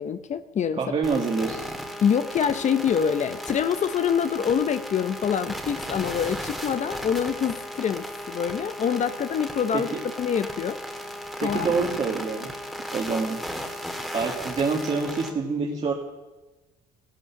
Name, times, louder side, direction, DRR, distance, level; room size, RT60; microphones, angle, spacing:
voice 1, 0.0-0.8 2.0-9.9 10.2-10.8 11.4-11.7, left 7 dB, 45° left, 11 dB, 0.7 m, -25 dB
voice 2, 0.8-1.6 9.7-10.0 11.4-12.5 12.9-13.4 14.1-15.9, right 4 dB, 40° right, -1 dB, 1.8 m, -26 dB
sound 1, 1.0-15.3, equal, ahead, 1.9 m, -35 dB
16.0 x 12.0 x 5.8 m, 1.2 s
cardioid pair, 110°, 17 cm